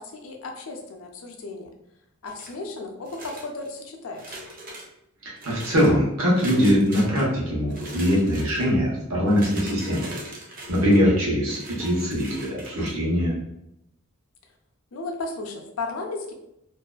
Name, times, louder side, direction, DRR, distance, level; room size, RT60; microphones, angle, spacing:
voice 1, 0.0-1.7 2.2-4.4 14.9-16.3, left 3 dB, 70° left, 2 dB, 0.5 m, -34 dB
sound 1, 2.3-2.6 3.1-3.7 4.1-4.9 5.4-5.9 6.4-7.2 7.7-8.7 9.2-11.0 11.5-12.9, right 2 dB, 40° right, 0.5 m, -40 dB
voice 2, 5.2-10.1 10.7-13.4, equal, 70° right, -5 dB, 1.0 m, -22 dB
2.5 x 2.3 x 2.3 m, 0.83 s
head